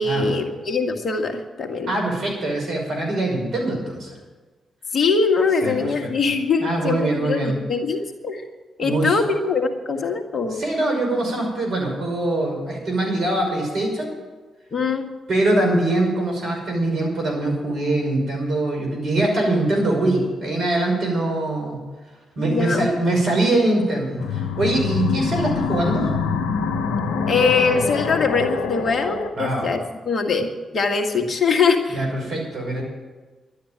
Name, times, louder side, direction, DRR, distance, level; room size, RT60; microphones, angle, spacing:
voice 1, 0.0-1.9 4.9-8.5 8.8-10.6 14.7-15.1 22.4-22.9 27.3-29.8 30.1-32.1, left 4 dB, 55° left, 4 dB, 2.0 m, -22 dB
voice 2, 1.9-4.1 5.6-6.1 6.6-7.5 8.8-9.2 10.5-14.1 15.3-21.8 22.4-26.1 29.3-29.7 31.9-32.8, right 2 dB, 65° right, 0 dB, 5.8 m, -23 dB
sound 1, 24.2-29.3, left 5 dB, 75° left, 1.0 m, -25 dB
12.5 x 9.9 x 9.2 m, 1.3 s
hypercardioid pair, 40°, 0 cm